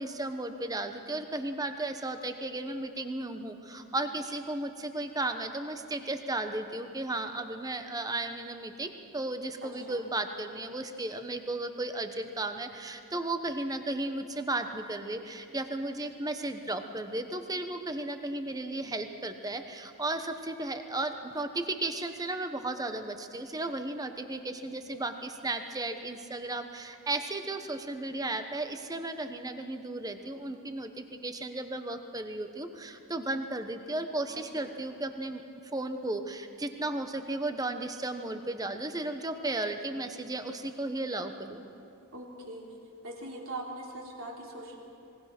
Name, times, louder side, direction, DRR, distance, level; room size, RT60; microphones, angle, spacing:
voice 1, 0.0-35.4 35.7-41.6, right 2 dB, 15° right, 7 dB, 1.1 m, -35 dB
voice 2, 9.6-10.1 34.6-34.7 42.1-42.6 43.0-44.8, right 2 dB, 70° right, -1 dB, 3.7 m, -41 dB
26.5 x 20.5 x 6.1 m, 2.7 s
head